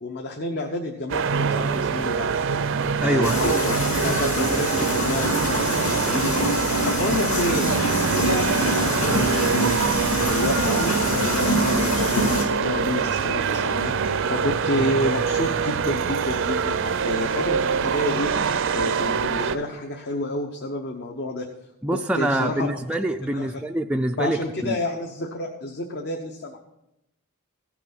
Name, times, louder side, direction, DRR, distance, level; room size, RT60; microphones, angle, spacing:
voice 1, 0.0-2.5 3.0-3.7 4.0-7.7 8.0-9.8 10.2-21.5 21.9-22.8 23.3-23.5 24.2-26.6, left 1 dB, 50° left, 2 dB, 1.0 m, -29 dB
sound 1, 1.1-19.6, right 6 dB, 65° right, 0.5 m, -24 dB
voice 2, 3.0-3.4 21.8-24.8, right 1 dB, 5° right, 3 dB, 0.3 m, -25 dB
sound 2, 3.2-12.4, left 1 dB, 85° left, 2.1 m, -25 dB
16.0 x 6.1 x 6.0 m, 0.86 s
head